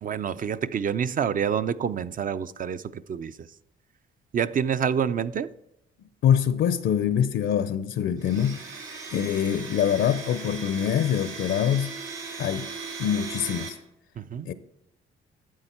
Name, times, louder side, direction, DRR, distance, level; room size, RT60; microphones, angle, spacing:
voice 1, 0.0-3.3 4.3-5.5 14.2-14.5, right 7 dB, 45° right, 0.5 m, -27 dB
voice 2, 6.2-8.6 9.1-12.0 12.4-12.7 13.0-13.8 14.5-14.6, left 9 dB, 70° left, 0.6 m, -24 dB
Domestic sounds home sounds, 8.2-13.7, right 4 dB, 75° right, 2.6 m, -38 dB
12.5 x 7.8 x 4.3 m
cardioid pair, 90°, 20 cm